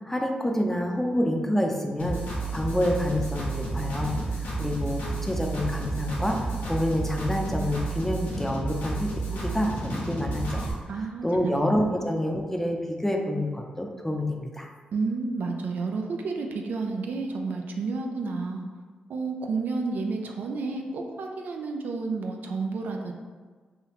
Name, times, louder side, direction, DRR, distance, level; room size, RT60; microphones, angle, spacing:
voice 1, 0.1-2.2 2.5-6.4 6.6-10.7 11.2-14.7, left 1 dB, 10° left, 2 dB, 0.5 m, -28 dB
sound 1, 2.0-10.7, right 3 dB, 85° left, 0.8 m, -31 dB
voice 2, 10.9-11.6 14.9-18.6 19.1-23.1, right 4 dB, 75° right, 2 dB, 0.3 m, -31 dB
3.3 x 2.3 x 3.0 m, 1.5 s
supercardioid pair, 50°, 3 cm